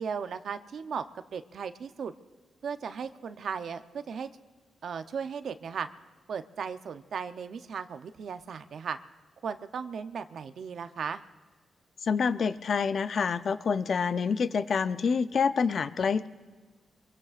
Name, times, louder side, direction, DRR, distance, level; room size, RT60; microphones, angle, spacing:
voice 1, 0.0-2.1 2.6-4.3 4.8-5.9 6.3-9.0 9.4-11.2, right 6 dB, 70° right, 10 dB, 0.7 m, -36 dB
voice 2, 12.0-16.3, left 5 dB, 60° left, 12 dB, 0.6 m, -27 dB
25.0 x 22.5 x 2.5 m, 1.4 s
cardioid pair, 90°, 0 cm